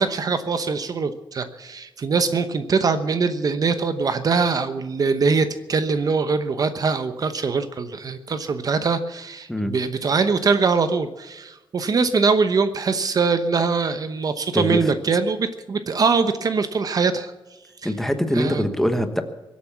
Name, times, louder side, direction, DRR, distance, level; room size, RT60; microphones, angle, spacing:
voice 1, 0.0-17.3 17.8-17.9 18.3-18.6, right 4 dB, 45° right, 10 dB, 0.9 m, -22 dB
voice 2, 14.5-14.8 17.8-19.2, equal, 5° left, 8 dB, 1.2 m, -23 dB
23.0 x 8.5 x 7.2 m, 1.1 s
wide cardioid pair, 160°, 9 cm